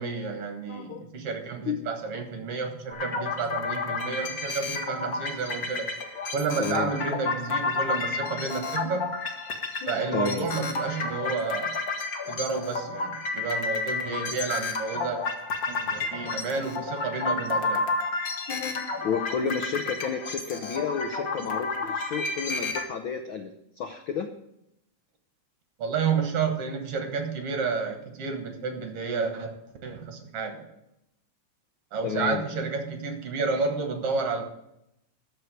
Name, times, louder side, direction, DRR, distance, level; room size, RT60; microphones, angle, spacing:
voice 1, 0.0-5.9 6.3-9.1 9.9-11.8 12.3-15.2 15.7-17.9 25.8-29.6 29.8-30.7 31.9-34.4, right 5 dB, 60° right, 6 dB, 2.2 m, -30 dB
voice 2, 0.7-1.1 1.7-1.8 6.6-6.9 9.8-10.5 18.5-23.5 23.8-24.3 32.0-32.4, left 6 dB, 90° left, 6 dB, 1.0 m, -31 dB
sound 1, 2.9-22.8, left 3 dB, 45° left, 1.3 m, -31 dB
13.0 x 4.8 x 8.0 m, 0.81 s
omnidirectional pair, 3.4 m